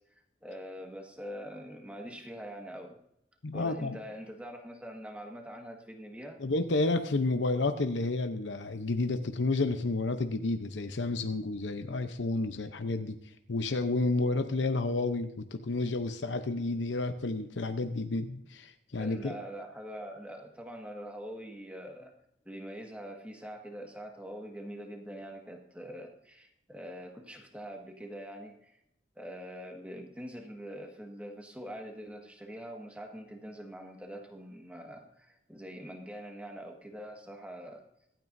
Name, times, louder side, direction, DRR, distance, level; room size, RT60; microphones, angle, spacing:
voice 1, 0.4-3.0 3.5-6.4 18.9-22.1 22.4-28.7 29.1-37.8, equal, 5° right, 1 dB, 1.7 m, -44 dB
voice 2, 3.4-4.0 6.4-13.2 13.5-19.4, left 2 dB, 85° left, 8 dB, 0.8 m, -30 dB
24.5 x 9.0 x 2.7 m, 0.75 s
head